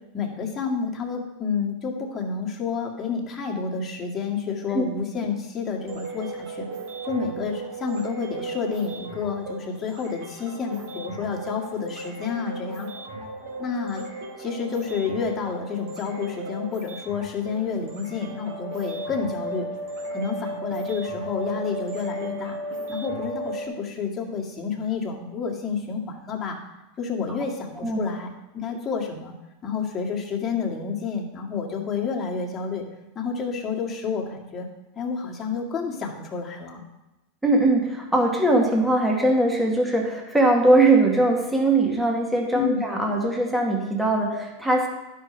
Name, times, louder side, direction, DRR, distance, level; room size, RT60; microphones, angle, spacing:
voice 1, 0.1-6.7 7.1-12.9 13.6-14.0 14.4-19.7 20.1-22.6 22.9-26.6 27.0-29.3 29.6-32.8 33.2-34.7 35.0-36.8 42.5-42.8, left 5 dB, 25° left, -2 dB, 2.0 m, -29 dB
sound 1, 5.9-23.6, right 1 dB, 60° right, 2.4 m, -35 dB
voice 2, 37.4-44.9, right 2 dB, 5° right, 0 dB, 1.8 m, -21 dB
11.5 x 5.7 x 5.1 m, 1.0 s
hypercardioid pair, 100°, 0 cm